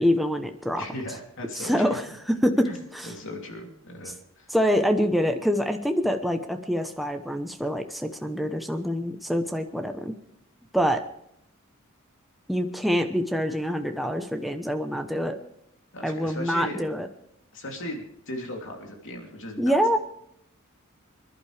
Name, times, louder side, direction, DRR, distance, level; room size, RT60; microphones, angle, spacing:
voice 1, 0.0-0.8 1.5-2.0 2.3-3.1 4.1-4.2 4.5-10.2 10.7-11.0 12.5-15.4 16.0-17.1 19.6-20.0, equal, ahead, 4 dB, 0.9 m, -25 dB
voice 2, 0.8-2.0 2.6-4.5 15.9-16.8 17.5-20.0, left 1 dB, 65° left, 1 dB, 3.1 m, -38 dB
26.0 x 11.5 x 3.4 m, 0.72 s
head